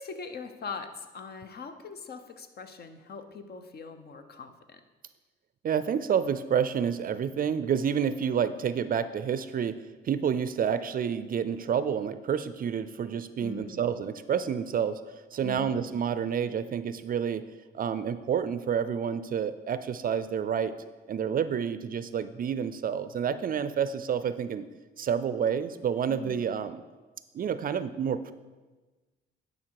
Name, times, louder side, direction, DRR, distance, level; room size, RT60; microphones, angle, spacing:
voice 1, 0.0-4.8 13.4-13.9 15.4-15.8 26.1-26.4, left 5 dB, 55° left, 8 dB, 0.9 m, -41 dB
voice 2, 5.6-9.8 10.0-15.0 15.3-17.4 17.7-20.7 21.1-24.7 25.0-26.8 27.3-28.3, right 8 dB, 45° right, 13 dB, 0.4 m, -29 dB
11.0 x 5.4 x 4.7 m, 1.3 s
cardioid pair, 90°, 20 cm